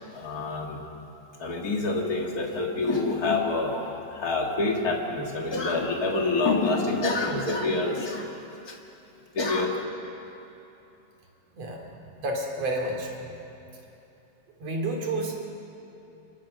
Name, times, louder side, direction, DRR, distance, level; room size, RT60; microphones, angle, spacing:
voice 1, 0.1-0.8 1.4-8.2 8.7-8.8 9.3-9.7, left 3 dB, 55° left, 0 dB, 1.0 m, -27 dB
voice 2, 12.2-13.1 14.6-15.5, right 2 dB, 40° right, 0 dB, 3.1 m, -30 dB
27.0 x 22.0 x 6.5 m, 2.8 s
omnidirectional pair, 4.9 m